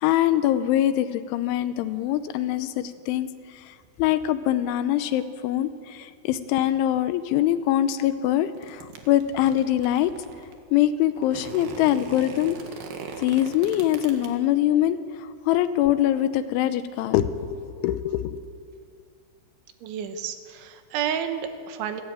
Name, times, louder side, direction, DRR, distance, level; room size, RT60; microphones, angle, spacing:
voice 1, 0.0-3.3 4.0-10.1 10.7-12.6 13.2-18.4, left 12 dB, 80° left, 12 dB, 3.2 m, -23 dB
sound 1, 8.5-10.5 11.2-14.3, right 5 dB, 60° right, 3.3 m, -40 dB
voice 2, 19.8-22.0, right 8 dB, 75° right, 8 dB, 3.6 m, -30 dB
28.0 x 14.0 x 9.0 m, 2.3 s
omnidirectional pair, 5.5 m